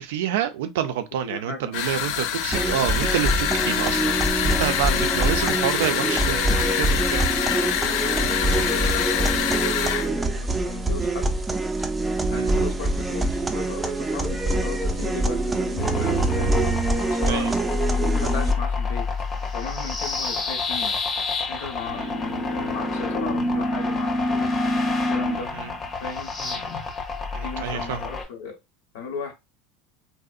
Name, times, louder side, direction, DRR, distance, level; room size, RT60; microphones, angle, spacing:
voice 1, 0.0-7.3 12.3-12.5 17.3-17.6 21.9-22.2 25.5-25.7 26.4-26.6 27.3-28.1, right 10 dB, 85° right, 0.4 m, -28 dB
voice 2, 1.3-1.7 4.9-5.2 7.8-11.3 12.3-16.6 17.1-17.5 18.1-19.0 19.4-20.9 21.5-24.5 25.1-25.5 26.0-26.3 27.4-28.6 28.9-29.3, left 5 dB, 85° left, 0.9 m, -36 dB
sound 1, 1.7-10.1, left 10 dB, 70° left, 0.3 m, -25 dB
sound 2, 2.5-18.5, right 2 dB, 15° right, 0.4 m, -25 dB
sound 3, 15.8-28.2, left 2 dB, 30° left, 0.6 m, -27 dB
2.7 x 2.0 x 2.4 m
supercardioid pair, 120°, 0 cm